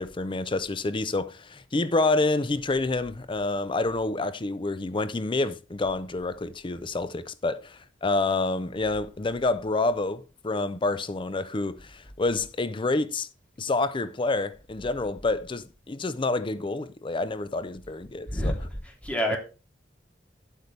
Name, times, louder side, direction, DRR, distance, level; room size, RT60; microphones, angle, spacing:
voice 1, 0.0-13.3 13.6-18.5 19.3-19.4, left 3 dB, 30° left, 0.5 m, -28 dB
voice 2, 18.8-19.4, equal, 5° left, 3.0 m, -27 dB
11.0 x 8.1 x 3.3 m
head